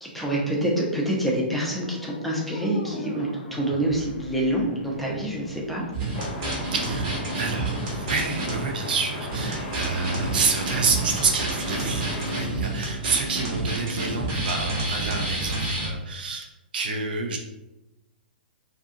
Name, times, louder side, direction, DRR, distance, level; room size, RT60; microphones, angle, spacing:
voice 1, 0.0-5.8, right 1 dB, ahead, -4 dB, 0.6 m, -26 dB
sound 1, 1.5-15.4, left 2 dB, 80° left, 0.5 m, -43 dB
sound 2, 5.9-8.6 8.9-9.0 9.3-15.9, right 2 dB, 40° right, 0.8 m, -29 dB
sound 3, 6.1-12.3, left 1 dB, 35° left, 0.8 m, -35 dB
voice 2, 6.7-16.5 16.7-17.4, right 4 dB, 65° right, 3 dB, 0.4 m, -28 dB
2.6 x 2.5 x 2.5 m, 0.99 s
figure-of-eight pair, 115°, 5 cm